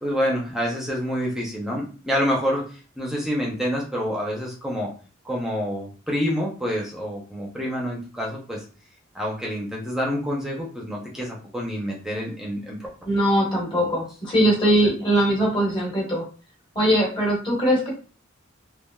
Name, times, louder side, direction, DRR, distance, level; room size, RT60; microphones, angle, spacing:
voice 1, 0.0-4.9 5.2-8.6 9.1-12.9 13.7-13.8, equal, ahead, -2 dB, 0.5 m, -27 dB
voice 2, 13.0-16.2 16.7-17.9, right 1 dB, 25° left, -3 dB, 1.2 m, -21 dB
3.3 x 2.3 x 2.2 m, 0.37 s
head